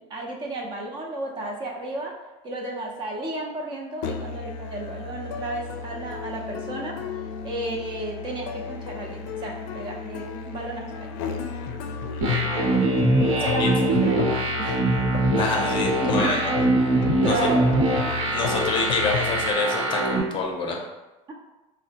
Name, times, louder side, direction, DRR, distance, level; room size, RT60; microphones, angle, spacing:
voice 1, 0.0-2.1 2.4-7.0 7.4-11.1 13.3-14.3 14.6-14.8 16.0-16.6 17.0-17.8, right 2 dB, 35° right, 0 dB, 0.5 m, -33 dB
Musical instrument, 4.0-19.5, left 6 dB, 90° left, 0.4 m, -33 dB
sound 1, 12.2-20.2, right 2 dB, 80° right, 0.9 m, -23 dB
voice 2, 15.4-16.4 17.2-17.5 18.3-20.8, left 3 dB, 35° left, 1 dB, 0.5 m, -27 dB
4.1 x 2.0 x 2.8 m, 1.1 s
cardioid pair, 150°, 14 cm